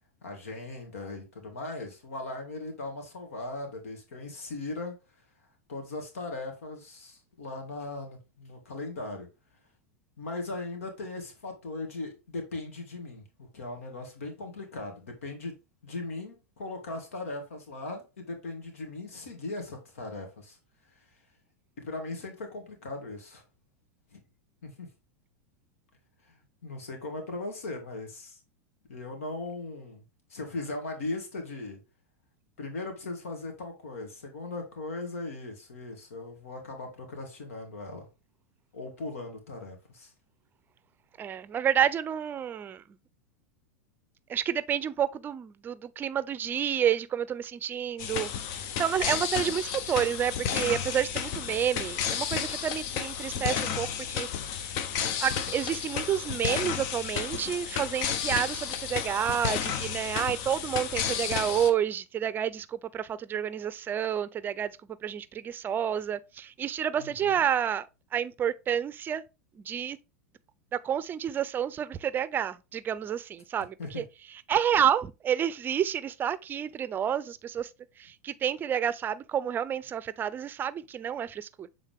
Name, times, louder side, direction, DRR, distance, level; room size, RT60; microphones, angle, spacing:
voice 1, 0.2-4.9 5.7-9.3 10.2-15.5 15.8-20.6 21.8-23.4 24.1-24.2 24.6-24.9 26.3-26.4 26.6-28.4 28.9-30.0 30.3-31.8 32.6-38.1 38.7-40.1 54.4-54.5 67.0-67.3 73.8-74.0, left 2 dB, 80° left, 2.0 m, -38 dB
voice 2, 41.2-42.8 44.3-48.3 48.8-54.7 55.2-64.7 65.0-67.9 68.1-69.2 69.6-70.0 70.8-74.1 74.5-77.7 78.0-81.7, right 9 dB, 25° right, 0.5 m, -29 dB
sound 1, 48.0-61.7, left 8 dB, 55° left, 0.8 m, -32 dB
7.2 x 3.8 x 3.5 m
hypercardioid pair, 105°, 7 cm